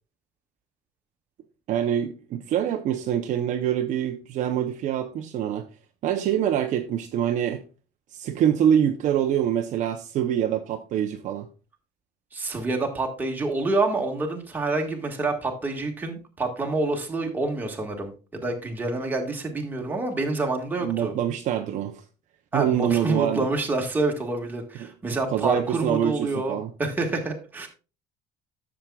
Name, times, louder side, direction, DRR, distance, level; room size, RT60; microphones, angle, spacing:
voice 1, 1.7-5.7 6.0-7.6 8.1-11.5 20.8-22.0 22.5-23.5 24.8-24.9 25.3-26.7, right 10 dB, 45° right, 0.7 m, -25 dB
voice 2, 12.3-21.1 22.5-27.7, right 2 dB, 10° right, 1.6 m, -27 dB
12.0 x 7.2 x 2.3 m
cardioid pair, 180°, 18 cm